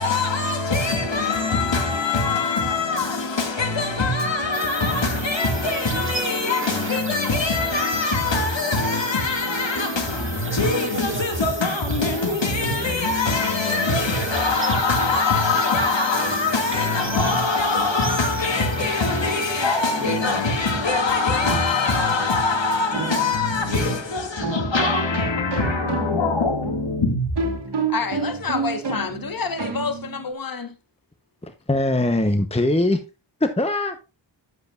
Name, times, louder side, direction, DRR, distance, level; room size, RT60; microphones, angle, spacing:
voice 1, 0.0-27.6, left 3 dB, 70° left, 2.4 m, -23 dB
sound 1, 4.5-20.6, right 5 dB, 30° right, 0.7 m, -34 dB
sound 2, 16.0-30.3, right 4 dB, 60° right, 1.8 m, -32 dB
Wind instrument woodwind instrument, 17.1-21.4, left 5 dB, 90° left, 3.2 m, -33 dB
voice 2, 27.9-30.7, left 5 dB, 45° left, 1.5 m, -28 dB
voice 3, 31.4-33.0 33.4-34.0, left 1 dB, 15° left, 1.0 m, -21 dB
11.0 x 7.7 x 2.5 m
cardioid pair, 50°, 46 cm